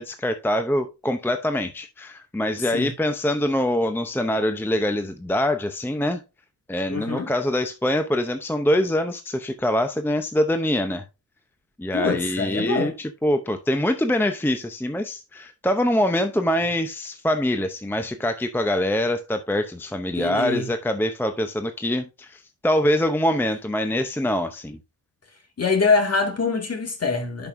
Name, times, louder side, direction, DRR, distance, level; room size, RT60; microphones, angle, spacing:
voice 1, 0.0-6.2 6.7-11.0 11.8-24.8, left 1 dB, 5° left, 0.7 m, -24 dB
voice 2, 2.6-2.9 6.9-7.3 11.9-12.9 20.2-20.7 25.6-27.5, left 4 dB, 40° left, 2.1 m, -24 dB
11.0 x 5.4 x 2.6 m
cardioid pair, 95°, 40 cm